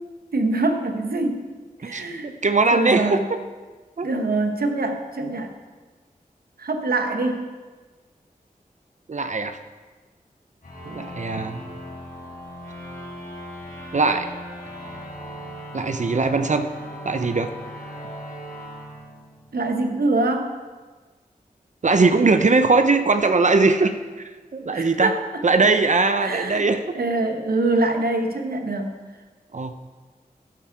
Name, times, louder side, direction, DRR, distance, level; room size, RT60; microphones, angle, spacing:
voice 1, 0.3-1.4 1.8-2.3 2.7-3.3 4.0-5.5 6.6-7.5 19.5-20.5 24.7-25.4 26.2-26.7 26.9-29.0, right 2 dB, 80° right, 5 dB, 1.1 m, -24 dB
voice 2, 1.8-3.2 4.0-4.1 9.1-9.6 10.9-11.6 13.9-14.3 15.7-16.7 17.0-17.5 21.8-24.0 24.5-25.1 25.4-26.8 29.5-29.7, right 3 dB, 50° right, 8 dB, 0.6 m, -20 dB
sound 1, 10.6-19.9, equal, 70° left, 3.6 m, -38 dB
12.5 x 7.4 x 4.7 m, 1.4 s
cardioid pair, 40°, 15 cm